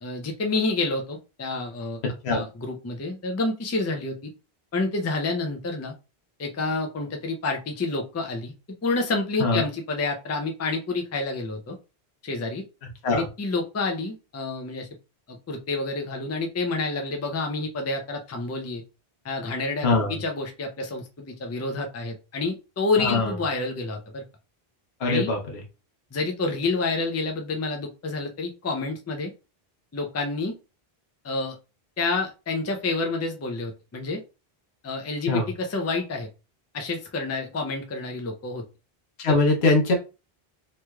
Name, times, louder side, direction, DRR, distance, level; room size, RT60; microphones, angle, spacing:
voice 1, 0.0-2.0 2.3-4.3 4.7-5.9 6.4-8.5 8.8-11.8 12.2-12.6 13.1-14.9 15.3-18.8 19.2-24.2 25.0-25.3 26.1-29.3 29.9-30.6 31.2-31.6 32.0-34.2 34.8-36.3 36.7-38.6 39.3-39.4, left 3 dB, 25° left, 3 dB, 0.3 m, -28 dB
voice 2, 12.8-13.3 19.8-20.2 23.0-23.4 25.0-25.6 35.2-35.5 39.2-39.9, left 3 dB, 85° left, 1 dB, 1.0 m, -23 dB
3.1 x 3.0 x 2.2 m, 0.30 s
omnidirectional pair, 1.0 m